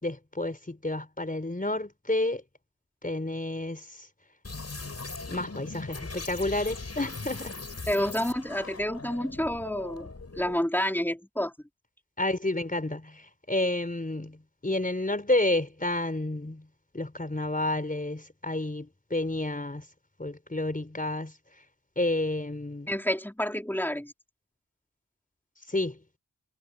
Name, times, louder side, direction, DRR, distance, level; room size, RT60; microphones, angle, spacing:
voice 1, 0.0-2.4 3.0-4.1 5.3-7.6 12.2-16.7 16.9-19.9 20.2-21.3 22.0-22.9 25.7-26.0, left 2 dB, 25° left, 4.6 m, -30 dB
sound 1, 4.4-10.6, left 3 dB, 50° left, 6.0 m, -40 dB
voice 2, 7.9-11.5 22.9-24.1, equal, 5° left, 4.4 m, -29 dB
wide cardioid pair, 95°, 33 cm